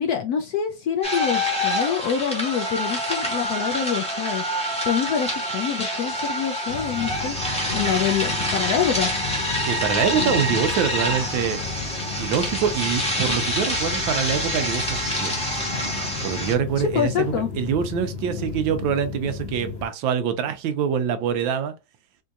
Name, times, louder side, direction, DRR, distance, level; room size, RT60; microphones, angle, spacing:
voice 1, 0.0-4.4 4.8-7.4 7.7-9.1 16.8-17.5, left 8 dB, 75° left, 0.9 m, -26 dB
sound 1, 1.0-16.5, equal, 5° left, 0.8 m, -26 dB
sound 2, 6.7-19.9, left 5 dB, 50° left, 0.8 m, -33 dB
voice 2, 9.6-11.6 12.2-15.4 16.2-21.7, right 7 dB, 90° right, 1.4 m, -25 dB
4.4 x 2.7 x 2.3 m
omnidirectional pair, 2.1 m